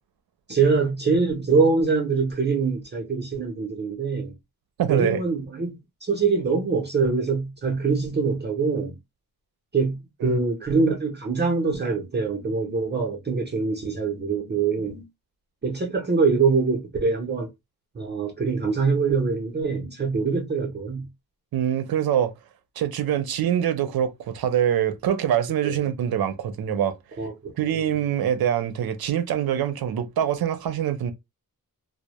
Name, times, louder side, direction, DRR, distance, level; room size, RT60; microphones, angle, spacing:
voice 1, 0.5-4.3 4.9-8.9 9.7-15.1 15.6-17.5 17.9-21.1 25.6-25.8 27.2-27.8, right 4 dB, 30° right, 0.6 m, -24 dB
voice 2, 4.8-5.2 10.2-10.4 21.5-22.3 22.8-26.9 27.6-31.1, right 9 dB, 70° right, 0.6 m, -24 dB
2.1 x 2.1 x 2.9 m
wide cardioid pair, 140°, 37 cm